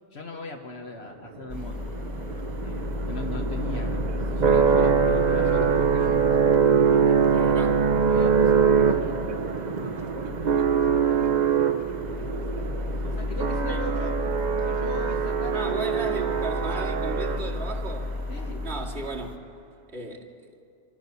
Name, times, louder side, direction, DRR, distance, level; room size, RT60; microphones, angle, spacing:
voice 1, 0.1-1.9 2.6-6.2 6.8-7.2 8.1-9.2 11.1-11.3 13.0-14.1 14.6-15.9 18.3-18.6, left 2 dB, 75° left, 2 dB, 1.6 m, -38 dB
sound 1, 1.5-19.4, left 2 dB, 20° left, 1.0 m, -33 dB
sound 2, 1.6-17.8, right 7 dB, 45° right, 0.8 m, -24 dB
voice 2, 7.3-7.8 13.7-13.8 15.5-18.1 18.6-19.3 19.9-20.5, right 3 dB, 85° right, -2 dB, 2.5 m, -35 dB
26.0 x 14.5 x 6.9 m, 2.6 s
omnidirectional pair, 1.1 m